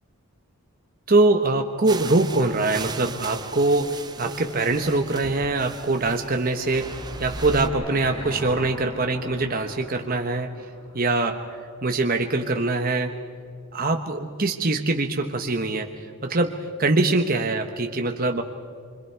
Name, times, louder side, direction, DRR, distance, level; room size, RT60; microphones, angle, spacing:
voice 1, 1.1-10.7 10.9-13.2 13.7-15.9 16.2-18.4, right 2 dB, 40° right, 5 dB, 1.1 m, -23 dB
sound 1, 1.8-7.7, right 4 dB, 20° right, 0.7 m, -38 dB
Car passing by / Engine, 5.4-11.7, equal, 25° left, 5.0 m, -42 dB
28.5 x 25.5 x 4.6 m, 2.3 s
head